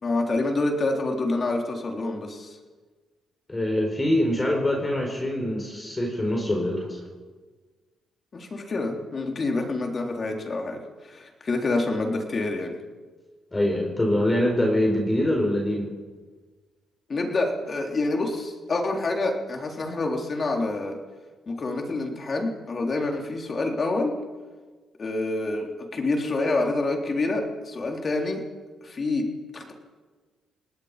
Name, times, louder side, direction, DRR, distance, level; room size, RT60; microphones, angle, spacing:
voice 1, 0.0-2.6 8.3-12.8 17.1-21.0 21.5-24.2 25.0-28.4 28.8-29.3 29.5-29.7, left 2 dB, 40° left, 2 dB, 3.8 m, -27 dB
voice 2, 3.5-7.0 13.5-15.9, left 1 dB, 20° left, 1 dB, 5.1 m, -24 dB
28.5 x 19.0 x 5.2 m, 1.4 s
cardioid pair, 90°, 0 cm